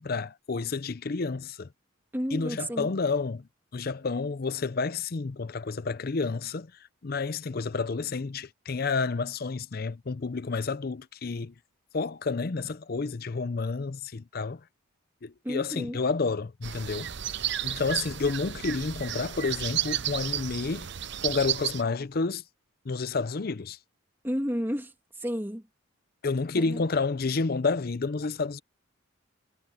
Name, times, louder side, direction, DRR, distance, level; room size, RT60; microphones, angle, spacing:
voice 1, 0.0-1.7 2.3-6.7 7.0-11.5 11.9-14.6 15.2-17.1 17.6-20.9 21.2-22.4 22.8-23.8 26.2-28.6, left 4 dB, 45° left, 0.5 m, -30 dB
voice 2, 2.1-2.9 15.4-16.0 24.2-24.9 25.2-25.6 26.6-26.8, equal, 10° right, 2.5 m, -31 dB
sound 1, 16.6-21.8, right 10 dB, 55° right, 0.7 m, -32 dB
head